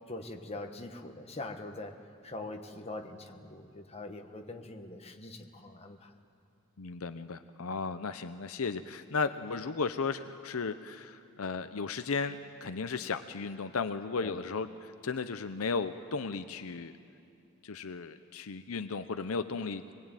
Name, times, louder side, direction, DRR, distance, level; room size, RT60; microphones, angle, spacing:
voice 1, 0.1-2.0 2.2-6.1 14.2-14.3, left 2 dB, 30° left, 4 dB, 1.4 m, -43 dB
voice 2, 6.8-16.9 17.6-19.9, left 4 dB, 70° left, 10 dB, 0.7 m, -35 dB
24.0 x 20.5 x 9.0 m, 2.6 s
head